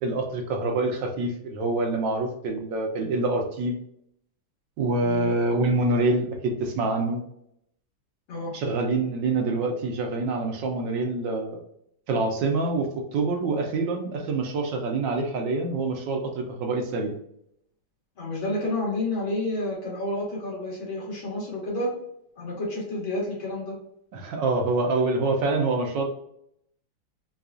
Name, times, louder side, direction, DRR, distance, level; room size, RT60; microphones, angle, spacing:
voice 1, 0.0-3.8 4.8-7.2 8.5-11.6 12.1-17.1 24.1-26.0, right 3 dB, 75° right, 3 dB, 1.3 m, -26 dB
voice 2, 18.2-21.9 22.4-23.8, left 1 dB, 85° left, -5 dB, 2.5 m, -30 dB
4.8 x 2.3 x 2.5 m, 0.74 s
omnidirectional pair, 2.1 m